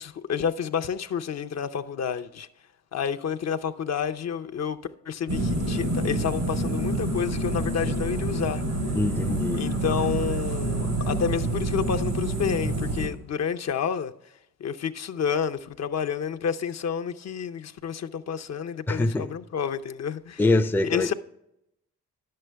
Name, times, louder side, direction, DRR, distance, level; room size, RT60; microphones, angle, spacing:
voice 1, 0.0-2.5 2.9-4.8 5.1-8.6 9.5-14.1 14.6-20.4 20.8-21.1, left 7 dB, 50° left, 0.6 m, -29 dB
sound 1, 5.3-13.1, right 1 dB, 90° right, 3.2 m, -27 dB
voice 2, 9.0-9.6 18.9-19.3 20.4-21.1, left 2 dB, 5° left, 0.5 m, -24 dB
10.5 x 7.6 x 3.4 m
cardioid pair, 60°, 33 cm